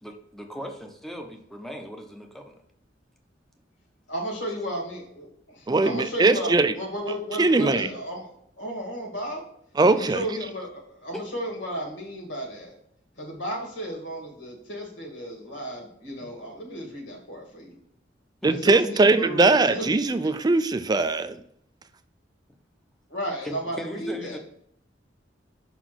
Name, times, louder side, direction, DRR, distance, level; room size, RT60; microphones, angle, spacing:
voice 1, 0.0-2.6 11.1-11.2 18.4-18.6 23.4-24.4, equal, ahead, 4 dB, 0.8 m, -38 dB
voice 2, 4.1-8.3 8.6-9.4 9.9-12.7 13.2-17.8 18.5-20.3 23.1-24.4, equal, 80° left, 0 dB, 2.2 m, -34 dB
voice 3, 5.7-6.7 7.4-7.9 9.8-10.2 18.4-21.4, right 3 dB, 20° right, 11 dB, 0.4 m, -20 dB
5.8 x 4.1 x 6.1 m, 0.70 s
head